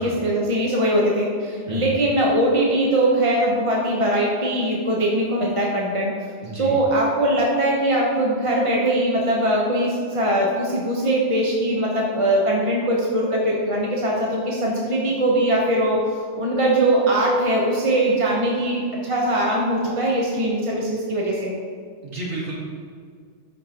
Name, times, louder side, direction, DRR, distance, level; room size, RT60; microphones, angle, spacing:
voice 1, 0.0-6.1 6.6-21.5, right 1 dB, 30° right, -3 dB, 0.9 m, -21 dB
voice 2, 6.4-6.8 22.0-22.6, right 2 dB, 65° right, -5 dB, 2.3 m, -31 dB
13.0 x 5.5 x 2.9 m, 2.1 s
omnidirectional pair, 1.2 m